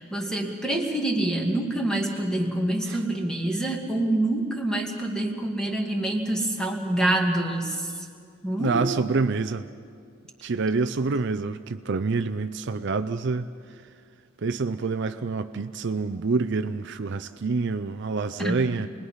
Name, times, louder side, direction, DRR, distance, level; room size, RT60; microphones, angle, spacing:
voice 1, 0.0-7.9 8.4-9.0 18.4-18.6, right 1 dB, 5° left, 0 dB, 2.1 m, -26 dB
voice 2, 8.6-9.7 10.4-13.5 14.4-18.9, right 4 dB, 55° right, 10 dB, 0.5 m, -27 dB
27.5 x 21.0 x 5.6 m, 2.3 s
head